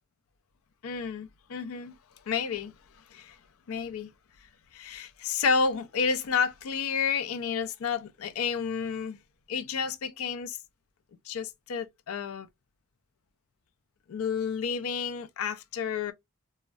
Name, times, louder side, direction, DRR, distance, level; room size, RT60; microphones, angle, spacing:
voice 1, 0.8-1.9 2.3-2.7 3.1-3.4 3.7-4.1 4.7-9.2 9.5-10.6 11.3-12.5 14.1-16.1, left 6 dB, 80° left, 0.4 m, -30 dB
3.5 x 2.1 x 2.2 m
head